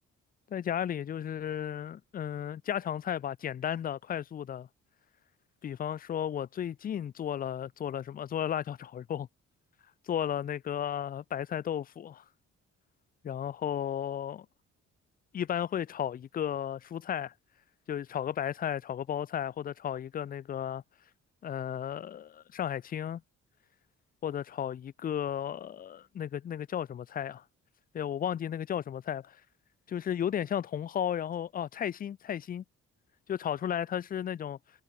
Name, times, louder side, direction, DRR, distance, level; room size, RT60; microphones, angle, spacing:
voice 1, 0.5-4.7 5.6-9.3 10.1-12.2 13.2-14.5 15.3-17.3 17.9-20.8 21.4-23.2 24.2-27.4 27.9-29.4 29.9-32.6 33.3-34.6, left 9 dB, 25° left, 0.3 m, -34 dB
hypercardioid pair, 45°, 38 cm